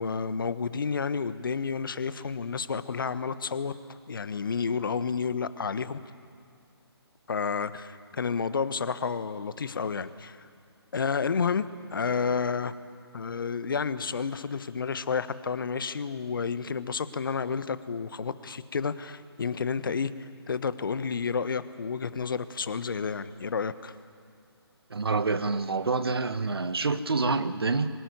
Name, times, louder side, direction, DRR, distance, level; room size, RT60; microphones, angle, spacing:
voice 1, 0.0-6.0 7.3-10.4 10.9-12.7 13.1-24.0, left 5 dB, 55° left, 1.2 m, -30 dB
voice 2, 24.9-27.9, right 3 dB, 65° right, 1.4 m, -27 dB
25.0 x 18.5 x 9.5 m
figure-of-eight pair, 145°, 14 cm